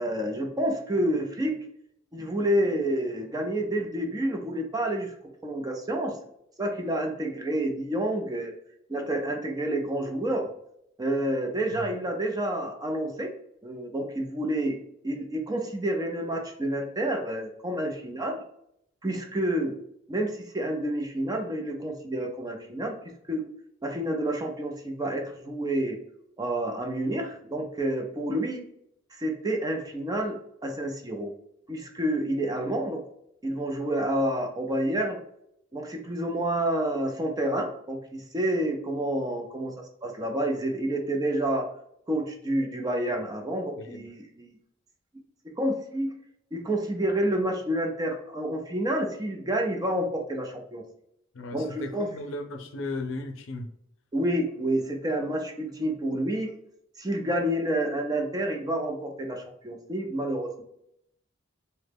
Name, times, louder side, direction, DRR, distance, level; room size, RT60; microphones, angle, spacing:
voice 1, 0.0-1.6 2.1-5.1 5.4-6.2 6.6-8.5 8.9-10.5 11.0-13.3 13.6-14.8 15.0-18.4 19.0-19.8 20.1-23.0 23.3-23.5 23.8-26.0 26.4-28.6 29.1-30.4 30.6-31.3 31.7-33.0 33.4-35.2 35.7-41.7 42.1-44.6 45.6-46.1 46.5-50.8 51.5-52.1 54.1-56.5 57.0-60.6, right 1 dB, 20° right, 3 dB, 0.5 m, -29 dB
voice 2, 43.8-44.2 51.3-53.7, left 2 dB, 75° left, 5 dB, 0.5 m, -36 dB
2.9 x 2.2 x 3.4 m, 0.74 s
head